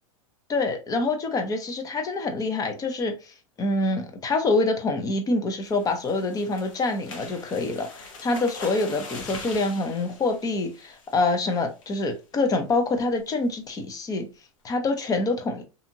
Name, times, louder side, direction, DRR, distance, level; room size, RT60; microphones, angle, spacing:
voice 1, 0.5-14.3 14.6-15.6, left 3 dB, 20° left, 0.6 m, -26 dB
sound 1, 5.6-11.4 11.8-12.1 12.4-12.5 12.9-13.2, left 3 dB, 70° left, 0.9 m, -42 dB
2.7 x 2.5 x 2.7 m
hypercardioid pair, 115°, 17 cm